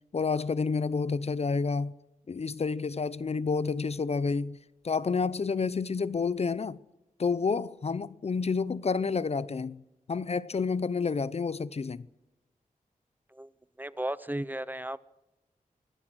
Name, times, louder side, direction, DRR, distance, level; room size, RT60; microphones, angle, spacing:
voice 1, 0.1-1.9 2.3-4.6 4.8-6.8 7.2-9.8 10.1-12.0, left 4 dB, 45° left, 0.7 m, -29 dB
voice 2, 13.8-15.0, right 1 dB, 10° right, 0.6 m, -34 dB
24.5 x 17.5 x 6.2 m
wide cardioid pair, 110°, 15 cm